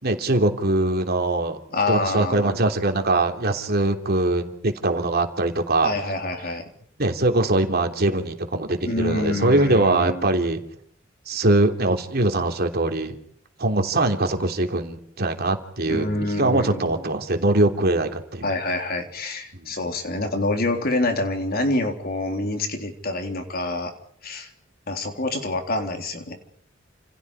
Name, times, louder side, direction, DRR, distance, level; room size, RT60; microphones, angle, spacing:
voice 1, 0.0-1.6 1.9-5.9 7.0-10.6 11.3-13.2 13.6-18.4 19.6-19.7, right 2 dB, 55° right, 5 dB, 3.2 m, -22 dB
voice 2, 1.7-2.5 5.8-6.6 8.8-10.3 15.9-16.9 18.4-23.9 24.2-24.5 24.9-26.3, left 2 dB, 50° left, 4 dB, 3.6 m, -26 dB
29.5 x 28.0 x 4.9 m, 0.66 s
head